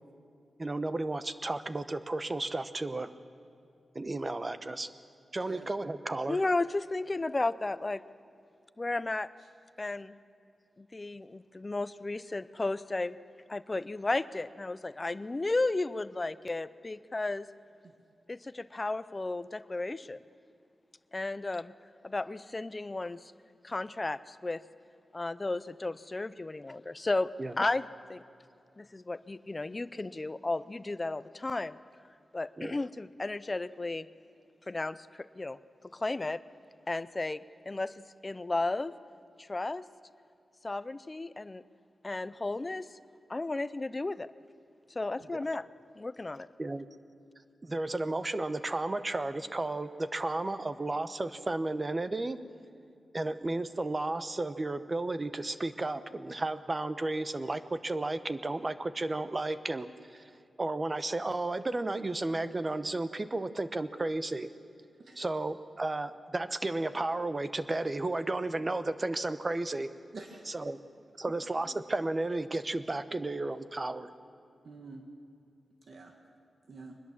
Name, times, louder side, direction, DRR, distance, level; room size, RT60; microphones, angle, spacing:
voice 1, 0.6-3.1 3.9-4.9 5.3-6.4 27.4-27.5 32.6-32.7 46.6-46.9 47.6-52.4 53.1-60.2 60.6-64.5 65.2-69.9 70.5-70.8 71.2-74.1, right 2 dB, 25° right, 12 dB, 0.8 m, -33 dB
voice 2, 6.3-8.0 8.8-9.3 9.8-10.2 10.8-13.2 13.5-17.5 18.3-20.2 21.1-21.7 22.0-23.3 23.6-24.6 25.1-28.2 28.8-31.8 32.3-34.1 34.7-35.6 35.9-36.4 36.9-37.9 38.2-38.9 39.4-39.9 40.6-41.6 42.0-42.9 43.3-44.3 44.9-45.7 46.0-46.5, left 2 dB, 25° left, 15 dB, 0.5 m, -34 dB
voice 3, 70.1-70.5 71.3-71.7 74.6-75.0 75.9-76.1 76.7-77.0, right 3 dB, 55° right, 3 dB, 1.6 m, -48 dB
24.0 x 20.5 x 7.4 m, 2.5 s
wide cardioid pair, 155°, 0 cm